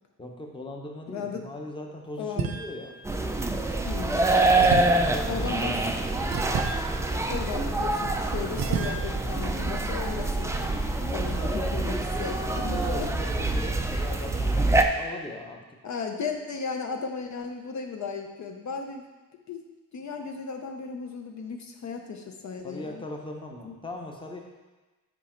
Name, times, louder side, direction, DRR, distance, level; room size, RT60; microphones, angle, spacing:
voice 1, 0.2-2.9 4.6-6.1 11.1-15.6 22.6-24.4, left 2 dB, 15° left, 1 dB, 0.8 m, -39 dB
voice 2, 1.1-1.5 2.2-2.6 3.8-4.3 5.2-5.8 7.3-10.7 11.0-11.9 12.2-13.1 15.8-19.0 19.5-19.6 19.9-23.0 23.6-23.8, left 5 dB, 55° left, 4 dB, 0.6 m, -35 dB
sound 1, 2.4-3.1 4.6-8.0 8.6-9.0, right 6 dB, 85° right, 0.7 m, -33 dB
sound 2, 3.0-14.8, right 2 dB, 10° right, 0.3 m, -26 dB
8.1 x 5.1 x 4.4 m, 1.2 s
wide cardioid pair, 160°, 34 cm